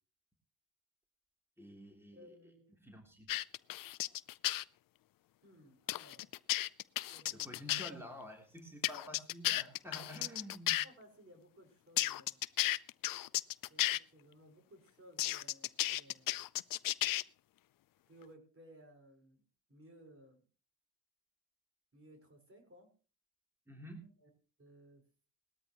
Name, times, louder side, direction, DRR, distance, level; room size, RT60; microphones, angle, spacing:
voice 1, 1.6-2.4 2.7-3.3 7.3-10.8 23.7-24.0, equal, 5° right, 0 dB, 3.4 m, -49 dB
voice 2, 2.2-2.7 5.4-6.3 7.1-7.5 10.8-12.4 13.7-16.4 18.1-20.4 21.9-22.9 23.8-23.9 24.2-24.3 24.6-25.0, equal, 35° right, 2 dB, 5.2 m, -60 dB
sound 1, 3.3-4.6 5.9-7.9 8.8-10.8 12.0-14.0 15.2-17.2, left 15 dB, 70° left, 0.6 m, -34 dB
19.5 x 13.0 x 3.1 m, 0.38 s
cardioid pair, 80°, 35 cm